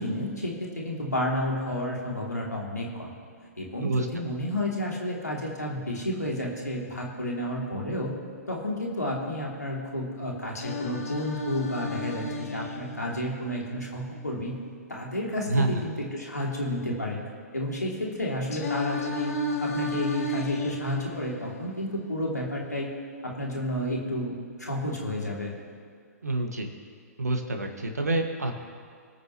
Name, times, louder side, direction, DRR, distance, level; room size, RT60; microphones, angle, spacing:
voice 1, 0.0-3.1 3.6-8.1 8.5-14.6 14.9-17.2 17.5-19.3 19.6-22.9 23.2-25.6, left 1 dB, 85° left, -3 dB, 2.8 m, -31 dB
Singing, 10.6-14.6 18.5-22.6, left 2 dB, 65° left, 1.7 m, -34 dB
voice 2, 15.5-15.8 26.2-26.7 27.2-28.5, right 2 dB, 75° right, 4 dB, 1.8 m, -27 dB
25.0 x 9.3 x 3.1 m, 2.1 s
figure-of-eight pair, 120°, 9 cm